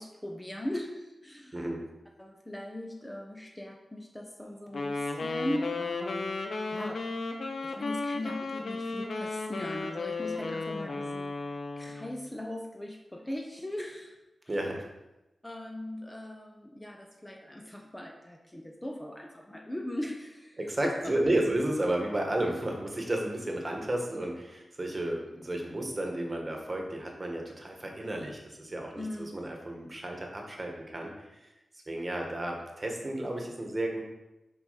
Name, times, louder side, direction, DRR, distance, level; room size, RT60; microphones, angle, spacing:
voice 1, 0.0-1.7 2.2-14.2 14.4-14.6 15.4-21.1 29.0-29.4, left 1 dB, 15° left, 1 dB, 0.9 m, -39 dB
Wind instrument woodwind instrument, 4.7-12.2, left 3 dB, 65° left, 0.8 m, -34 dB
voice 2, 14.5-14.8 20.6-31.5 31.9-34.0, right 1 dB, 30° right, 1 dB, 1.6 m, -32 dB
5.9 x 4.8 x 5.8 m, 0.99 s
cardioid pair, 70°, 0 cm